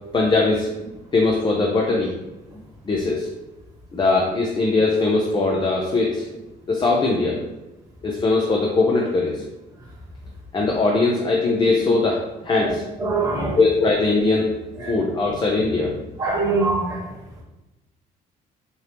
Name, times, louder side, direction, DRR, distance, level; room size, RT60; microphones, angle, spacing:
voice 1, 0.1-2.1 2.9-3.3 3.9-6.3 6.7-7.4 8.0-9.5 10.5-12.8 13.6-14.5 14.9-16.0, left 3 dB, 25° left, -1 dB, 0.6 m, -20 dB
voice 2, 13.0-13.6 14.8-14.9 16.2-17.1, right 3 dB, 20° right, -4 dB, 1.2 m, -23 dB
4.4 x 2.7 x 3.4 m, 0.98 s
cardioid pair, 110°, 17 cm